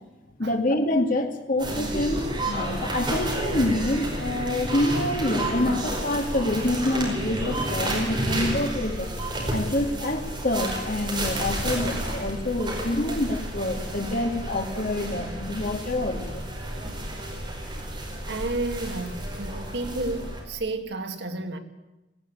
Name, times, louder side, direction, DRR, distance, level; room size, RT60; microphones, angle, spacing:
voice 1, 0.4-9.1 9.5-16.4, left 1 dB, 50° left, 2.4 m, -27 dB
sound 1, 1.6-20.4, right 1 dB, 25° right, 5.0 m, -31 dB
voice 2, 18.3-21.6, right 2 dB, 70° right, 2.0 m, -31 dB
18.0 x 17.5 x 8.6 m
head